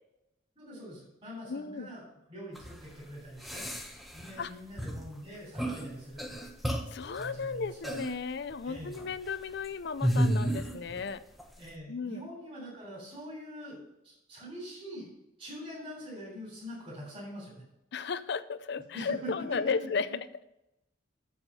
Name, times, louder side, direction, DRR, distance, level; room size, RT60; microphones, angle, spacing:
voice 1, 0.6-3.6 4.1-6.5 7.1-8.0 8.6-9.0 11.6-15.1 15.4-17.5 18.9-20.2, equal, 30° right, -5 dB, 3.5 m, -44 dB
voice 2, 1.5-1.9 4.4-4.5 6.9-11.2 11.9-12.2 17.9-20.1, left 5 dB, 65° left, 14 dB, 0.5 m, -34 dB
sound 1, 2.6-2.8 3.4-4.5 4.8-5.1 5.6-5.9 6.2-7.1 7.8-8.2 8.8-9.1 10.0-11.1 11.4-11.5, equal, ahead, 0.8 m, -31 dB
7.3 x 7.1 x 5.5 m, 0.88 s
head